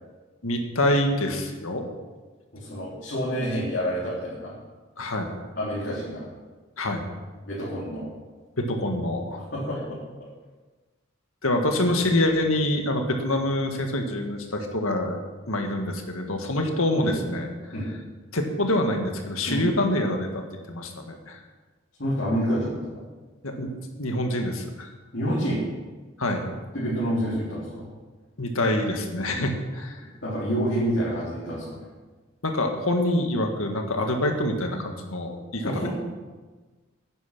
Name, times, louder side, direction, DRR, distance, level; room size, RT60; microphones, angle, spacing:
voice 1, 0.4-1.8 5.0-5.3 6.8-7.0 8.6-9.4 11.4-15.2 15.5-17.5 18.3-20.4 20.7-21.4 23.4-23.7 24.0-24.9 26.2-26.5 28.4-30.0 32.4-35.9, left 1 dB, 85° left, 4 dB, 1.8 m, -26 dB
voice 2, 2.5-4.5 5.6-6.3 7.4-8.1 9.4-10.3 12.1-12.2 17.0-17.1 17.7-17.9 19.5-19.6 22.0-23.0 25.1-25.6 26.7-27.9 30.2-31.8 35.6-35.9, equal, 55° left, -9 dB, 3.7 m, -28 dB
11.0 x 9.5 x 6.1 m, 1.3 s
head